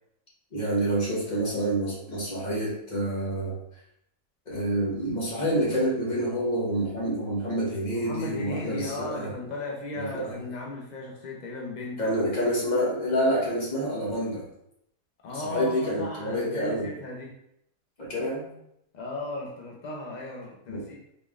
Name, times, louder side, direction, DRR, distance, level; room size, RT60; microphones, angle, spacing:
voice 1, 0.5-3.6 4.5-9.3 9.9-10.4 12.0-14.4 15.3-16.9 18.0-18.5 20.7-20.9, right 1 dB, 30° left, -5 dB, 1.1 m, -28 dB
voice 2, 7.9-12.1 15.2-17.3 18.9-20.9, left 2 dB, 75° left, -2 dB, 0.4 m, -36 dB
4.2 x 3.4 x 2.4 m, 0.78 s
omnidirectional pair, 1.7 m